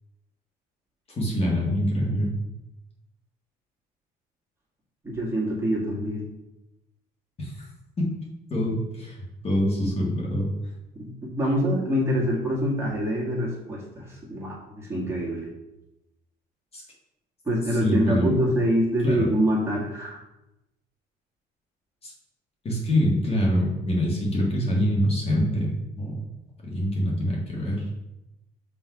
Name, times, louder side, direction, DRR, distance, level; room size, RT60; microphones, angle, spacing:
voice 1, 1.1-2.3 7.4-7.5 8.5-10.5 16.7-16.8 17.8-18.4 19.0-19.3 22.0-22.1 22.6-26.2 26.6-27.8, equal, 35° left, -3 dB, 1.7 m, -25 dB
voice 2, 5.0-6.3 11.0-15.5 17.5-20.2, equal, 15° right, -5 dB, 1.9 m, -25 dB
6.1 x 3.3 x 4.7 m, 0.94 s
cardioid pair, 110°, 17 cm